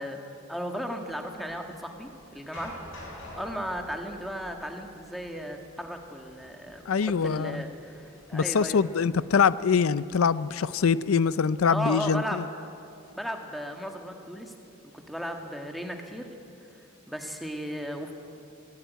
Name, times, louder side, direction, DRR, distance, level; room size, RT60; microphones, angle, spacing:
voice 1, 0.0-8.8 11.7-12.4 13.1-14.5 15.1-16.3 16.7-18.1, equal, ahead, 3 dB, 1.7 m, -36 dB
sound 1, 1.0-11.2, left 1 dB, 60° left, 6.6 m, -50 dB
voice 2, 6.9-7.6 8.3-12.4, left 6 dB, 85° left, 17 dB, 0.5 m, -24 dB
23.5 x 16.5 x 9.3 m, 2.7 s
head